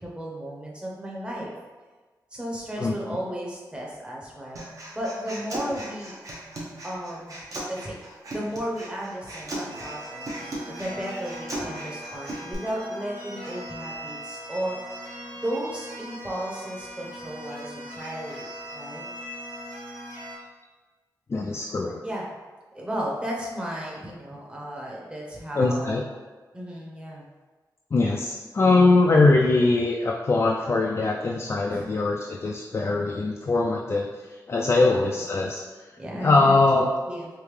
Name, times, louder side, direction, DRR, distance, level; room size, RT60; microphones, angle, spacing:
voice 1, 0.0-1.5 2.3-4.6 4.9-6.2 6.8-7.4 7.7-8.0 8.3-14.8 15.4-19.0 22.0-22.3 22.7-26.1 26.5-27.3 31.7-32.0 36.0-37.3, equal, 15° right, -3 dB, 0.9 m, -34 dB
Human voice, 4.6-12.5, right 1 dB, 50° right, 0.9 m, -37 dB
sound 1, 9.7-20.4, equal, 70° right, 1.2 m, -40 dB
voice 2, 21.3-22.0 25.6-26.0 27.9-35.9 36.2-36.9, left 3 dB, 40° left, -1 dB, 0.3 m, -22 dB
3.5 x 2.7 x 3.2 m, 1.3 s
wide cardioid pair, 100°, 7 cm